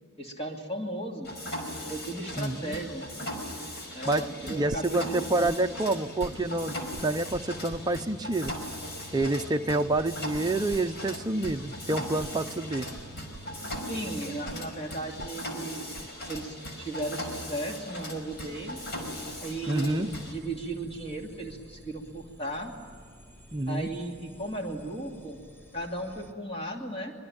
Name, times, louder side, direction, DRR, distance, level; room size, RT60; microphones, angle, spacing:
voice 1, 0.2-1.3 1.9-3.1 3.9-5.7 13.6-15.9 16.3-18.9 19.4-22.7 23.7-25.4 25.7-27.1, right 1 dB, 30° left, 1 dB, 2.7 m, -36 dB
Mechanisms, 1.2-20.3, left 1 dB, 55° left, 5.2 m, -38 dB
voice 2, 2.4-2.8 4.1-6.8 7.0-8.5 9.1-12.9 19.7-20.1 23.5-23.9, right 2 dB, 20° right, 5 dB, 0.7 m, -28 dB
sound 1, 4.7-5.6 5.8-8.2 8.4-16.1 16.3-16.9, right 3 dB, 55° right, 0.6 m, -44 dB
sound 2, 18.3-26.3, equal, 10° left, 2.2 m, -53 dB
25.0 x 22.5 x 8.9 m, 2.2 s
head